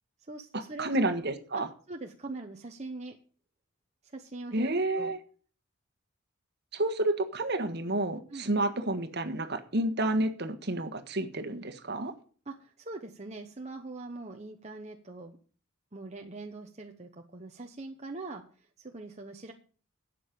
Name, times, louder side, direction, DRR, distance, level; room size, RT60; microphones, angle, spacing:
voice 1, 0.2-1.0 1.5-3.2 4.0-5.1 8.3-8.5 12.4-15.4 15.9-19.5, right 2 dB, 30° right, 2 dB, 1.0 m, -42 dB
voice 2, 0.8-1.7 4.5-5.2 6.7-12.1, right 1 dB, 50° right, 8 dB, 1.5 m, -30 dB
12.5 x 8.5 x 5.3 m, 0.42 s
head